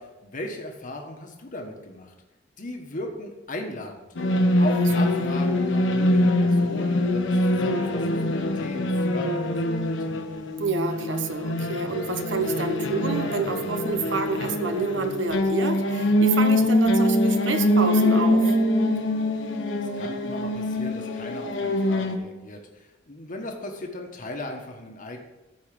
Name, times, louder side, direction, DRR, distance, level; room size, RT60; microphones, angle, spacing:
voice 1, 0.0-2.1 2.6-4.1 4.6-9.9 19.8-25.2, left 1 dB, 45° left, 2 dB, 1.4 m, -37 dB
sound 1, 4.2-22.2, left 1 dB, 80° left, 1.3 m, -23 dB
voice 2, 10.6-18.5, right 3 dB, 75° right, 7 dB, 1.2 m, -28 dB
13.5 x 4.8 x 6.9 m, 1.0 s
head